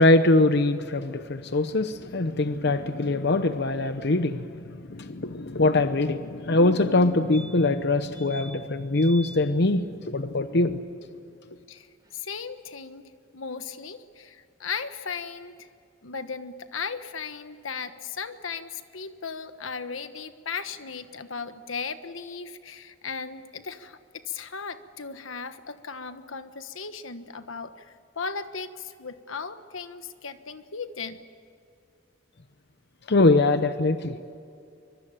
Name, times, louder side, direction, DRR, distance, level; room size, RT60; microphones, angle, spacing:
voice 1, 0.0-10.8 33.1-34.2, left 2 dB, 60° left, 10 dB, 0.9 m, -23 dB
sound 1, 7.0-7.1 7.3-7.8 8.1-8.6 8.9-9.4 11.8-11.9 12.1-12.2, equal, 20° right, 1.5 m, -44 dB
voice 2, 12.1-15.7 16.0-31.2, left 5 dB, 85° left, 10 dB, 1.3 m, -36 dB
24.5 x 22.5 x 9.0 m, 2.5 s
head